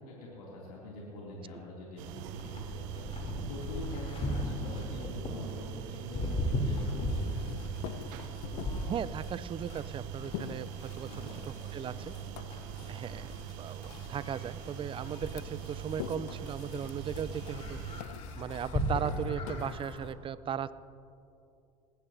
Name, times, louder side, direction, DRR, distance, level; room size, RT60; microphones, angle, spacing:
voice 1, 0.1-7.6 11.0-12.1, left 1 dB, 85° left, -5 dB, 2.7 m, -45 dB
sound 1, 2.0-18.0, right 12 dB, 70° right, 0.6 m, -43 dB
Livestock farm animals working animals, 2.4-20.1, left 1 dB, 35° left, 3.1 m, -38 dB
sound 2, 7.0-20.1, left 12 dB, 70° left, 0.6 m, -47 dB
voice 2, 8.9-12.1 12.9-17.8 18.4-20.7, right 8 dB, 30° right, 17 dB, 0.5 m, -37 dB
19.5 x 16.0 x 2.7 m, 2.7 s
hypercardioid pair, 80°, 18 cm